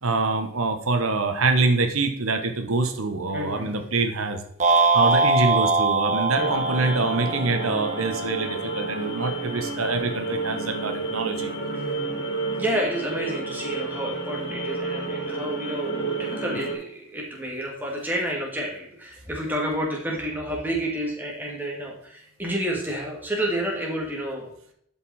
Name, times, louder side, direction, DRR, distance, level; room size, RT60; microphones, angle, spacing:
voice 1, 0.0-4.4 4.9-11.5, right 3 dB, 85° right, 6 dB, 1.1 m, -25 dB
voice 2, 3.3-3.9 6.4-6.6 11.7-12.2 12.6-24.5, equal, 10° right, -2 dB, 2.0 m, -30 dB
sound 1, 4.6-8.9, right 3 dB, 35° right, 1.1 m, -23 dB
sound 2, 6.3-16.7, right 3 dB, 55° left, 2.8 m, -31 dB
11.5 x 5.3 x 4.2 m, 0.68 s
head